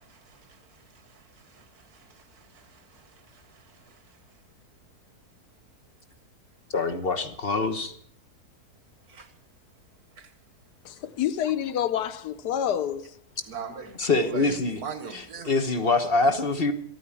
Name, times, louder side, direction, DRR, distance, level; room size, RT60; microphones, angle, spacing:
voice 1, 0.0-4.4 9.1-9.3 10.2-10.3 11.4-11.5 13.5-15.6, right 5 dB, 70° right, 1.9 m, -43 dB
voice 2, 6.7-7.9 14.0-14.8 15.5-16.7, left 3 dB, 40° left, 1.2 m, -24 dB
voice 3, 10.8-13.2, left 10 dB, 85° left, 1.4 m, -28 dB
12.5 x 9.3 x 8.5 m
omnidirectional pair, 1.7 m